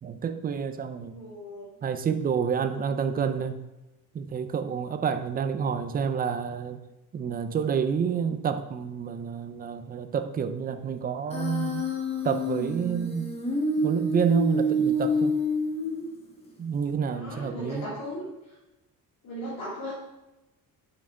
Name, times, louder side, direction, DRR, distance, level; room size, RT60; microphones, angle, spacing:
voice 1, 0.0-1.1 1.8-3.6 4.1-6.8 7.1-11.9 12.2-13.3 13.8-15.3 16.6-17.9, right 6 dB, 25° right, 9 dB, 0.4 m, -28 dB
voice 2, 1.1-1.7 17.0-18.2 19.2-19.9, equal, 60° left, -8 dB, 3.2 m, -37 dB
Human voice, 11.3-16.3, equal, 15° left, 1.3 m, -28 dB
7.7 x 5.8 x 4.8 m, 1.0 s
cardioid pair, 180°, 39 cm